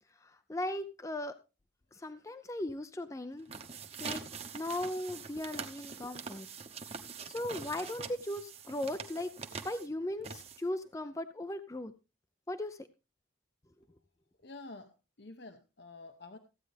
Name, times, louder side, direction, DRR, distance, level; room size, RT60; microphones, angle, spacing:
voice 1, 0.2-1.4 1.9-3.5 4.0-4.2 4.5-6.5 7.2-9.3 9.6-11.9 12.5-12.9, left 1 dB, 15° left, 10 dB, 0.5 m, -38 dB
sound 1, 3.3-10.9, right 5 dB, 30° right, 1.0 m, -44 dB
voice 2, 14.4-16.4, left 3 dB, 60° left, 7 dB, 0.9 m, -49 dB
15.0 x 9.0 x 3.4 m, 0.29 s
head